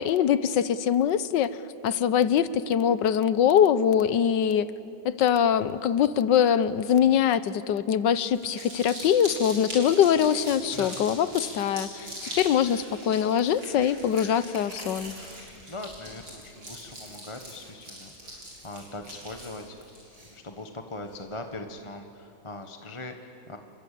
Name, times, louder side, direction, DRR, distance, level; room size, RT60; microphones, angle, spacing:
voice 1, 0.0-1.6 1.8-4.7 5.0-15.1, left 9 dB, 65° left, 15 dB, 1.4 m, -23 dB
Crumpling crinkling, 8.2-20.0, right 1 dB, 65° right, 7.8 m, -41 dB
voice 2, 10.7-11.0 15.7-19.9 20.3-23.6, left 2 dB, 20° left, 5 dB, 1.1 m, -41 dB
sound 1, 12.2-21.8, equal, 15° right, 4.3 m, -52 dB
29.5 x 23.5 x 8.5 m, 2.9 s
omnidirectional pair, 2.2 m